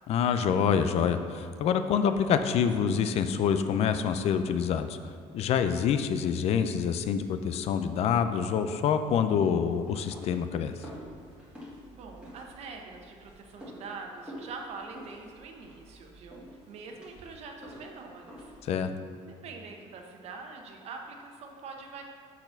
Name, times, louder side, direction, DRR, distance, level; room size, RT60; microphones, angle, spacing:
voice 1, 0.1-5.0 5.3-10.7 18.6-18.9, left 7 dB, 55° left, 9 dB, 0.5 m, -26 dB
sound 1, 9.0-18.8, equal, 10° right, 1.9 m, -49 dB
voice 2, 11.9-18.5 19.4-22.0, right 4 dB, 55° right, 2 dB, 0.9 m, -44 dB
6.6 x 4.2 x 5.8 m, 2.2 s
cardioid pair, 130°, 13 cm